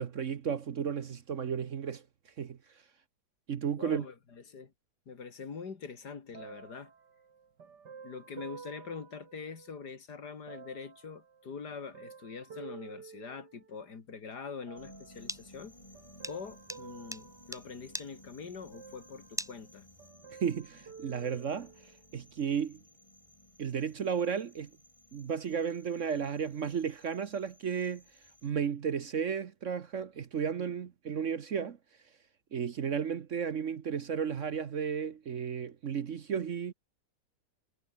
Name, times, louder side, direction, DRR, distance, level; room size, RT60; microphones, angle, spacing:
voice 1, 0.0-2.0 2.4-2.6 3.5-4.0 20.4-21.7 22.1-22.8 23.6-24.7 25.1-28.0 28.4-31.8 32.5-36.7, right 7 dB, 50° right, 1.2 m, -33 dB
voice 2, 3.7-4.7 5.1-6.9 8.0-15.7 16.2-19.9, left 5 dB, 70° left, 2.9 m, -44 dB
sound 1, 6.3-9.9 10.5-14.0 14.7-15.3 15.9-18.3 18.7-19.7 20.0-22.0 22.7-22.8, right 6 dB, 80° right, 2.8 m, -51 dB
sound 2, 14.8-28.5, left 1 dB, 15° left, 5.4 m, -58 dB
sound 3, 15.2-20.1, equal, 5° right, 0.8 m, -42 dB
omnidirectional pair, 1.8 m